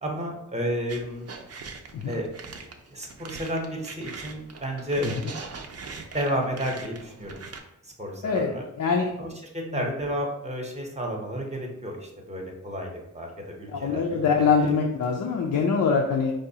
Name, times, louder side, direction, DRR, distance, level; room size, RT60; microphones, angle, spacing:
voice 1, 0.0-1.3 2.1-2.3 2.9-5.1 6.1-7.5 7.8-8.6 9.2-14.2 14.6-14.7, equal, 20° right, 0 dB, 0.7 m, -32 dB
sound 1, 0.9-7.6, right 4 dB, 55° right, 0.5 m, -41 dB
voice 2, 8.2-9.1 9.7-9.9 13.7-16.3, left 5 dB, 80° left, 0 dB, 0.5 m, -24 dB
4.8 x 2.3 x 2.7 m, 0.86 s
wide cardioid pair, 95°, 31 cm